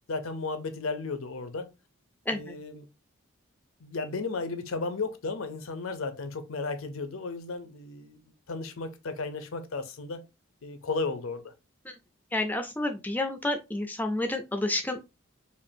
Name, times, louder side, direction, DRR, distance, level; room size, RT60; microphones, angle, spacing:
voice 1, 0.1-1.7 2.3-2.9 3.8-10.2 10.6-11.5, left 3 dB, 80° left, 0.7 m, -34 dB
voice 2, 12.3-15.0, left 2 dB, 10° left, 0.4 m, -29 dB
5.2 x 2.4 x 2.6 m
head